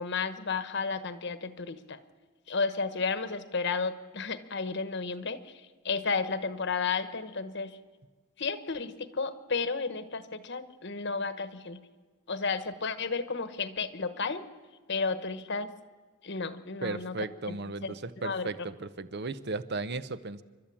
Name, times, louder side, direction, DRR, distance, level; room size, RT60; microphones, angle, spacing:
voice 1, 0.0-2.0 2.5-7.8 8.4-11.8 12.3-14.4 14.9-15.7 16.2-17.1 17.5-17.6 17.8-17.9 18.2-18.5, left 4 dB, 55° left, 12 dB, 1.2 m, -32 dB
voice 2, 16.8-20.4, right 3 dB, 50° right, 14 dB, 0.8 m, -35 dB
29.0 x 12.5 x 8.7 m, 1.4 s
head